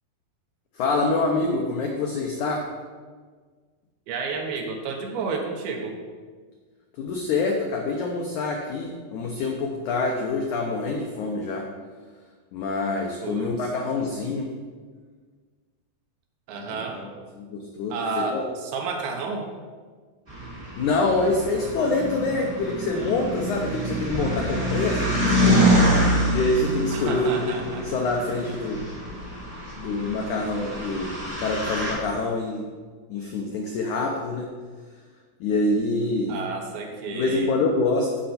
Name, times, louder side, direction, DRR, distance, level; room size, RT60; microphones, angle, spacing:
voice 1, 0.8-2.7 7.0-11.7 12.5-14.5 16.7-18.5 20.8-28.8 29.8-32.7 33.1-34.5 35.4-36.4 37.1-38.1, left 3 dB, 90° left, 1 dB, 1.7 m, -26 dB
voice 2, 4.1-6.0 13.2-13.5 16.5-17.0 17.9-19.5 26.9-27.8 36.3-37.5, right 4 dB, 75° right, 2 dB, 2.8 m, -31 dB
sound 1, 20.3-31.9, equal, 15° right, 2.5 m, -26 dB
15.0 x 5.3 x 4.3 m, 1.5 s
omnidirectional pair, 4.7 m